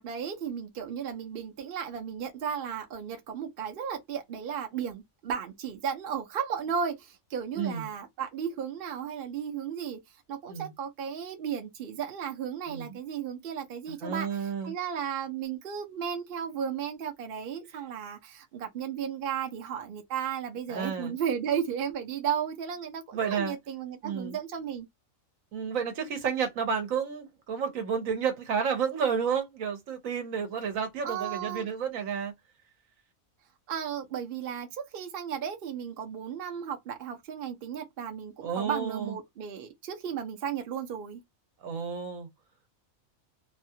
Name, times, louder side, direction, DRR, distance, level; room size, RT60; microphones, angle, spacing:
voice 1, 0.0-10.0 10.3-24.9 31.0-31.7 33.7-41.2, right 8 dB, 50° right, 0.8 m, -34 dB
voice 2, 7.6-7.9 10.5-10.7 12.7-13.0 14.0-14.7 20.7-21.1 23.1-23.6 24.0-24.4 25.5-32.3 38.4-39.1 41.6-42.3, right 6 dB, 75° right, 1.3 m, -31 dB
2.9 x 2.3 x 2.7 m
omnidirectional pair, 1.4 m